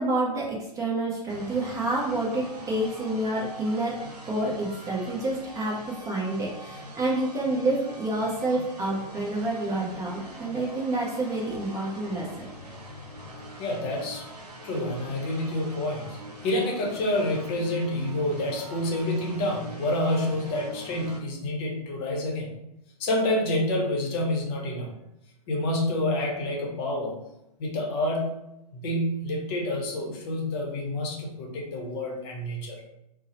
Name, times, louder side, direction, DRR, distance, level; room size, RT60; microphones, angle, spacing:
voice 1, 0.0-4.0 4.2-12.5, right 2 dB, 15° right, -4 dB, 0.5 m, -28 dB
sound 1, 1.3-21.2, right 1 dB, 80° right, 0.7 m, -43 dB
voice 2, 13.6-14.3 14.6-16.2 16.4-22.5 23.0-24.9 25.5-27.2 27.6-28.4 28.7-32.8, left 1 dB, 40° left, -1 dB, 0.7 m, -28 dB
2.7 x 2.0 x 2.8 m, 0.85 s
hypercardioid pair, 115°, 20 cm